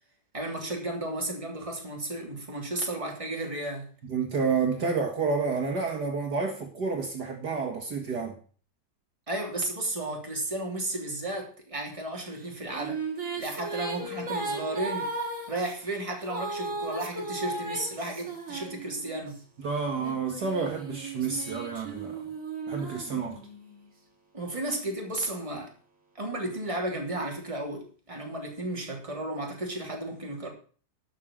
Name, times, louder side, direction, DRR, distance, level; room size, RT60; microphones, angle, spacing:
voice 1, 0.3-3.9 9.3-13.0 13.4-15.1 15.5-19.4 24.3-25.7 26.2-30.5, right 1 dB, 15° right, 3.1 m, -33 dB
voice 2, 4.1-8.3 19.6-22.2 22.7-23.4, right 5 dB, 60° right, 2.3 m, -29 dB
sound 1, 12.4-19.4 20.0-23.7, right 3 dB, 40° right, 2.9 m, -36 dB
12.0 x 6.8 x 7.4 m
omnidirectional pair, 2.1 m